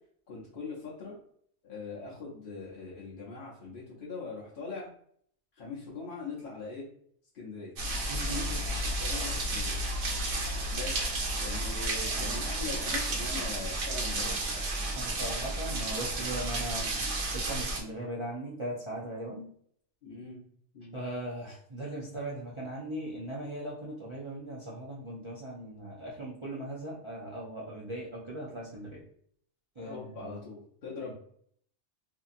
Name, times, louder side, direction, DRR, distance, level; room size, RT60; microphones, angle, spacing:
voice 1, 0.3-1.2 1.6-4.9 5.6-6.8 7.3-7.7 8.3-9.8 10.7-14.7 20.0-20.4 20.7-21.0 29.8-31.1, left 4 dB, 55° left, -5 dB, 0.8 m, -41 dB
sound 1, 7.8-17.8, right 2 dB, 90° right, 1.1 m, -32 dB
voice 2, 8.1-8.5 12.1-12.4 14.9-19.5 20.9-29.0 29.8-30.4 31.0-31.1, right 1 dB, 35° right, -6 dB, 0.5 m, -39 dB
2.7 x 2.7 x 2.5 m, 0.64 s
omnidirectional pair, 1.2 m